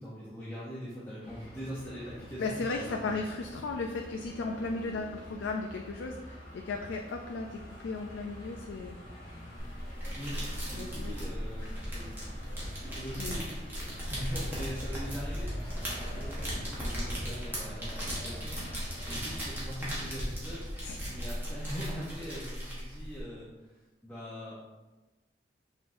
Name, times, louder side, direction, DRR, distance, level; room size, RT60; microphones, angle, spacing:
voice 1, 0.0-3.0 10.2-10.4 10.7-12.5 12.9-13.7 14.1-23.8 24.0-24.6, equal, 10° left, -8 dB, 0.6 m, -42 dB
sound 1, 1.2-19.6, equal, 25° left, 1.1 m, -46 dB
voice 2, 2.4-9.0 10.8-11.2 11.6-12.4 12.8-13.4 20.8-21.2, left 3 dB, 85° left, 3 dB, 0.3 m, -36 dB
sound 2, 9.6-23.2, equal, 10° right, 1.1 m, -37 dB
5.5 x 3.0 x 2.6 m, 1.2 s
head